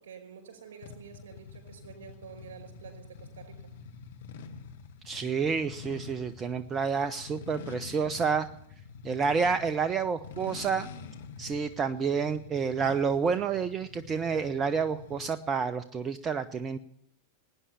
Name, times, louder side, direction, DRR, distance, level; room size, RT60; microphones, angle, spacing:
voice 1, 0.0-3.6, right 7 dB, 60° right, 6 dB, 5.3 m, -48 dB
sound 1, 0.8-15.5, left 5 dB, 60° left, 1.4 m, -47 dB
voice 2, 5.0-8.5 9.0-10.9 11.4-16.8, right 6 dB, 25° right, 13 dB, 0.6 m, -29 dB
17.5 x 9.8 x 7.3 m, 0.75 s
figure-of-eight pair, 90°, 0 cm